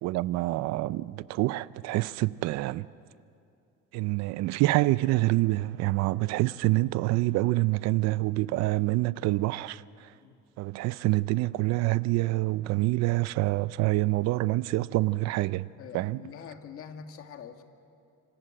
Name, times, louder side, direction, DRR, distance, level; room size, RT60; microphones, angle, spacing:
voice 1, 0.0-2.9 3.9-10.1 10.6-15.7 15.9-16.2, right 18 dB, 65° right, 0.6 m, -26 dB
voice 2, 15.7-17.6, left 7 dB, 50° left, 1.9 m, -44 dB
27.5 x 26.5 x 7.7 m
cardioid pair, 150°, 29 cm